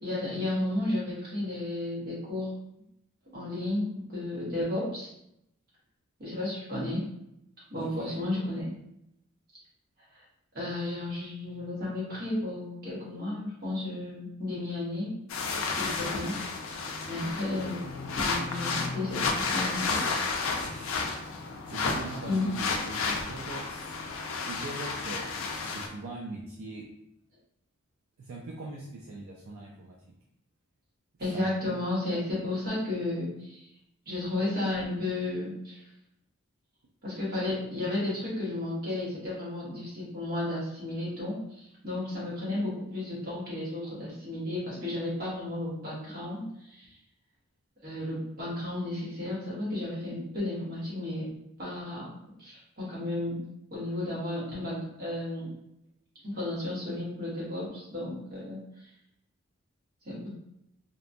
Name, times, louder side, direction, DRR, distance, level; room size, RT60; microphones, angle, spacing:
voice 1, 0.0-2.5 3.3-5.1 6.2-7.1 7.7-8.7 10.1-10.2 10.5-15.1 15.6-16.4 16.6-17.9 18.2-20.0 22.3-22.5 31.2-33.7 34.1-35.8 37.0-46.9 47.8-51.3 51.6-52.1 52.4-53.4 53.7-55.5 56.2-58.9 60.0-60.3, left 2 dB, 45° right, -7 dB, 1.1 m, -33 dB
voice 2, 7.7-8.1 20.6-21.4 21.7-23.9 24.5-26.8 28.2-30.0 31.3-31.8, right 2 dB, 70° right, -2 dB, 0.4 m, -41 dB
sound 1, 15.3-25.9, left 4 dB, 70° left, 0.4 m, -32 dB
2.8 x 2.1 x 2.5 m, 0.80 s
head